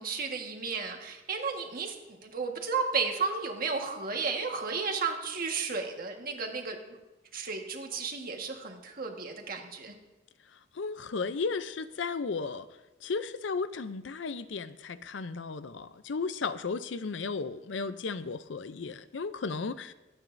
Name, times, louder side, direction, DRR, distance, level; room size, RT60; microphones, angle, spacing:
voice 1, 0.0-7.0 7.3-9.9, right 4 dB, 50° right, 3 dB, 1.5 m, -33 dB
voice 2, 10.5-12.7 13.0-19.9, left 4 dB, 70° left, 13 dB, 0.5 m, -35 dB
25.0 x 8.9 x 2.6 m, 1.0 s
head